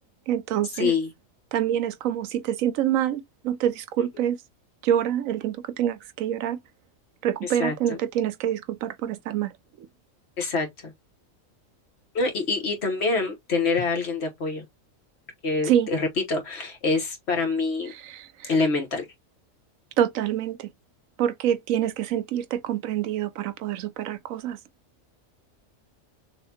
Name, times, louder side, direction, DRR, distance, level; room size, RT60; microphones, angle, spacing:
voice 1, 0.3-0.9 1.5-4.4 4.8-6.6 7.2-9.5 15.6-15.9 17.9-18.5 20.0-20.7 21.2-24.6, right 10 dB, 80° right, 1.0 m, -26 dB
voice 2, 0.8-1.1 4.2-4.3 7.4-7.7 10.4-10.9 12.1-14.6 15.4-17.9 18.4-19.1, left 3 dB, 55° left, 1.3 m, -26 dB
6.3 x 2.2 x 2.8 m
omnidirectional pair, 1.4 m